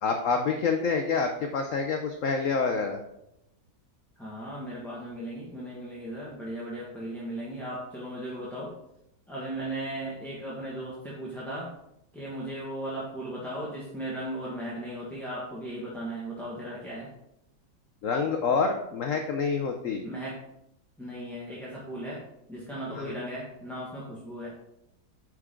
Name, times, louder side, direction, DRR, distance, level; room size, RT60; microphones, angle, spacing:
voice 1, 0.0-3.0 18.0-20.0 22.9-23.0, left 5 dB, 60° left, 4 dB, 0.9 m, -27 dB
voice 2, 4.2-8.7 9.3-11.7 12.1-17.1 20.0-20.4 21.0-22.2 22.5-24.5, right 1 dB, ahead, -7 dB, 1.4 m, -36 dB
9.5 x 4.8 x 3.7 m, 0.81 s
omnidirectional pair, 1.9 m